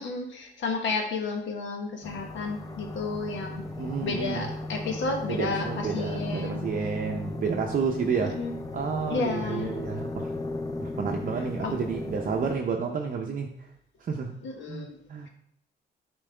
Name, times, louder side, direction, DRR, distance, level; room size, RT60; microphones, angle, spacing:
voice 1, 0.0-3.6 4.0-6.6 8.2-8.6 9.1-9.8 11.6-11.8 14.4-15.0, left 3 dB, 70° left, 3 dB, 1.2 m, -32 dB
sound 1, 2.0-12.6, left 2 dB, 15° left, 0.6 m, -36 dB
voice 2, 3.8-4.5 5.3-8.4 8.7-10.3 10.8-13.5 14.0-14.3 14.7-15.3, right 5 dB, 45° right, 1 dB, 0.6 m, -30 dB
7.4 x 4.5 x 3.3 m, 0.74 s
cardioid pair, 90°, 20 cm